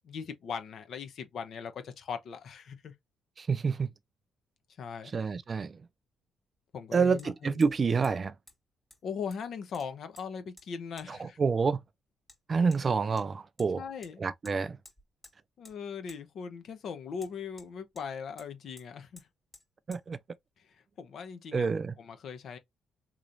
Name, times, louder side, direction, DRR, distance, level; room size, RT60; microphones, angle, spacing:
voice 1, 0.0-2.9 4.8-5.1 6.7-7.5 9.0-11.4 13.8-14.2 15.6-19.3 21.0-21.7 22.0-22.6, left 6 dB, 65° left, 0.7 m, -39 dB
voice 2, 3.4-3.9 5.0-5.9 6.9-8.4 11.1-11.8 12.5-13.8 14.2-14.8 19.9-20.2 21.5-21.9, right 5 dB, 40° right, 0.3 m, -28 dB
Hammer, 7.2-7.3 7.6-7.8 8.0-8.2 8.5-8.6 8.9-9.5 9.7-10.3 10.6-10.7 11.0-11.1 12.3-12.4 12.7-12.8 13.2-13.7 14.0-14.1 14.4-14.6 14.8-15.4 15.6-15.8 16.1-16.2 17.2-18.1 18.4-18.5 18.8-18.9 19.2-19.3 19.5-19.7 19.9-20.0, left 2 dB, 15° left, 1.7 m, -54 dB
3.9 x 3.0 x 2.5 m
cardioid pair, 90°, 0 cm